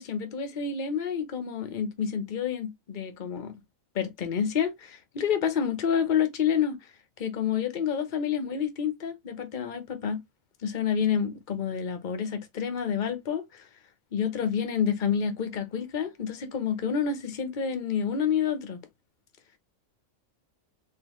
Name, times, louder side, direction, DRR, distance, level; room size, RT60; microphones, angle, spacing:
voice 1, 0.0-3.5 3.9-6.8 7.2-10.2 10.6-13.7 14.1-18.8, left 7 dB, 45° left, 0.9 m, -29 dB
3.9 x 3.0 x 2.9 m
omnidirectional pair, 1.4 m